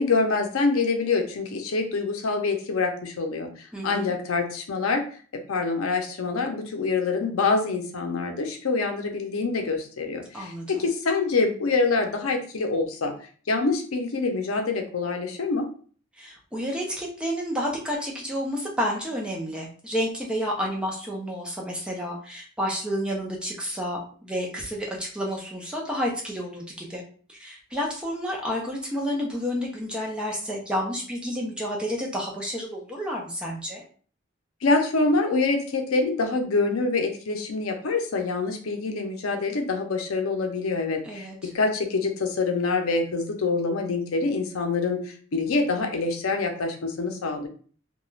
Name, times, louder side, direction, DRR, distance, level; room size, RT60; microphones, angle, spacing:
voice 1, 0.0-5.0 5.3-13.1 13.5-15.7 34.6-47.5, left 3 dB, 90° left, 4 dB, 0.5 m, -25 dB
voice 2, 3.7-4.1 10.3-10.8 16.2-27.0 27.3-33.8 41.0-41.5, equal, 5° right, -2 dB, 0.5 m, -30 dB
2.4 x 2.2 x 3.1 m, 0.43 s
head